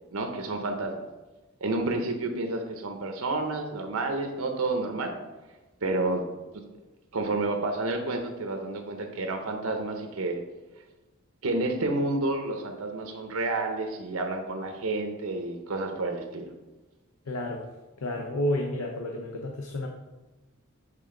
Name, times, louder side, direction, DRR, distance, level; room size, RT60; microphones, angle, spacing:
voice 1, 0.1-1.0 1.6-5.1 5.8-6.2 7.1-10.4 11.4-16.5, right 2 dB, 80° right, 4 dB, 0.7 m, -30 dB
voice 2, 17.3-17.6 18.0-19.9, left 1 dB, 85° left, 1 dB, 0.7 m, -30 dB
7.6 x 3.6 x 3.7 m, 1.1 s
head